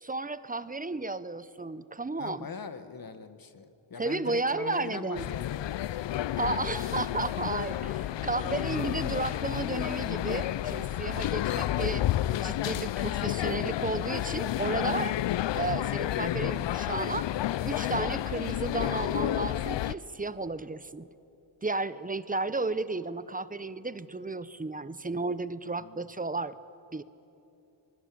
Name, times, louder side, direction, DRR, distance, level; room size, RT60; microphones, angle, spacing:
voice 1, 0.0-2.5 4.0-5.3 6.4-7.9 8.2-12.1 12.4-15.2 15.5-17.3 17.6-21.1 21.6-26.6 26.9-27.0, right 3 dB, 15° right, 15 dB, 0.7 m, -33 dB
voice 2, 2.2-5.6 5.9-6.0 25.8-26.1, left 5 dB, 45° left, 10 dB, 1.5 m, -42 dB
sound 1, 5.2-20.0, left 13 dB, 60° left, 0.6 m, -30 dB
24.5 x 20.5 x 8.5 m, 2.8 s
cardioid pair, 80°, 49 cm